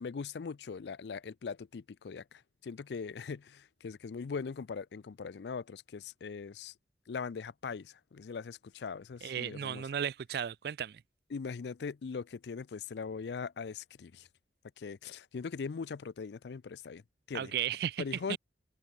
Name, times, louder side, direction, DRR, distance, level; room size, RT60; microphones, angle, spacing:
voice 1, 0.0-6.7 7.1-9.8 11.3-14.3 14.8-17.0 17.3-17.5 18.0-18.4, left 5 dB, 70° left, 0.4 m, -40 dB
voice 2, 9.2-11.0 17.3-18.0 18.3-18.4, right 9 dB, 60° right, 0.3 m, -35 dB
open air
head